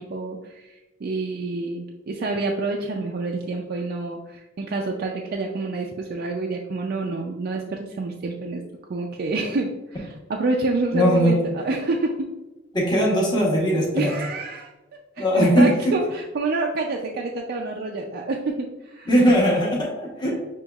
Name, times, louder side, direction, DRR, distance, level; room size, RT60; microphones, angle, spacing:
voice 1, 0.0-8.6 8.9-12.2 13.8-14.7 15.2-19.1, right 3 dB, 50° right, 0 dB, 0.4 m, -28 dB
voice 2, 10.9-11.4 12.7-14.1 15.2-15.9 19.1-20.3, equal, 20° left, -4 dB, 0.9 m, -19 dB
6.2 x 3.0 x 2.3 m, 1.1 s
head